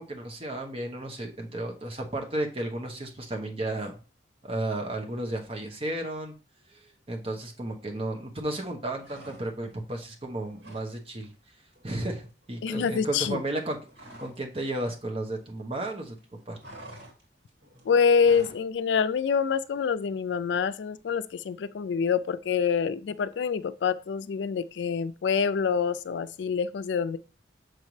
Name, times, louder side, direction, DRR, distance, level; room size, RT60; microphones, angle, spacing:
voice 1, 0.0-3.9 4.4-6.3 6.7-11.3 11.8-13.8 14.2-16.2 16.5-16.6, right 1 dB, 30° right, 1.0 m, -33 dB
sound 1, 9.0-9.8 10.1-10.9 11.2-11.4 11.7-14.5 14.7-18.7, right 1 dB, 65° right, 2.3 m, -49 dB
voice 2, 12.6-13.4 17.9-27.2, left 6 dB, 75° left, 0.4 m, -26 dB
6.5 x 5.3 x 3.2 m
head